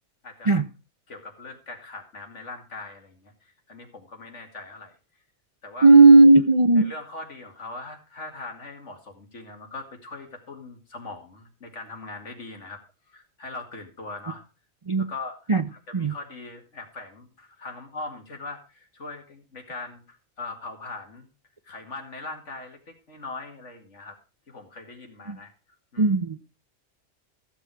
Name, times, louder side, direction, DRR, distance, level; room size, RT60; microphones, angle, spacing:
voice 1, 1.1-5.0 5.6-5.9 6.8-12.8 13.1-14.4 15.0-15.4 15.7-21.3 21.6-24.2 24.5-25.5 25.9-26.1, left 3 dB, 65° left, 2.6 m, -40 dB
voice 2, 5.8-6.8 14.9-15.0 15.5-15.6 15.9-16.1 25.3-25.4 26.0-26.4, right 3 dB, 35° right, 0.5 m, -15 dB
15.0 x 7.3 x 4.7 m
omnidirectional pair, 1.3 m